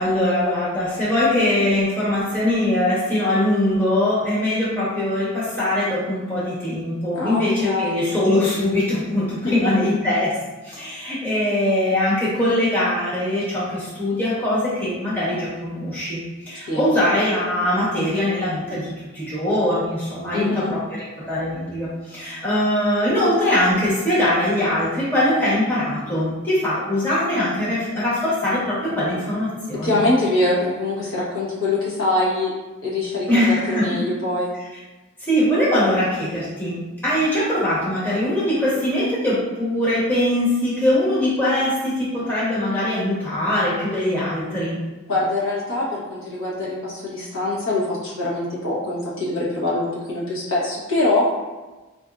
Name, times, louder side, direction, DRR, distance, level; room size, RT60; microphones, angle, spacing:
voice 1, 0.0-10.3 10.6-16.2 16.5-30.0 33.3-34.0 35.2-44.8, left 1 dB, 10° left, -9 dB, 0.9 m, -22 dB
voice 2, 7.1-8.0 9.4-9.7 16.7-16.9 20.3-20.7 29.8-32.5 32.8-33.3 33.7-34.5 45.1-51.3, left 2 dB, 80° left, -7 dB, 1.1 m, -23 dB
4.3 x 2.6 x 2.3 m, 1.2 s
head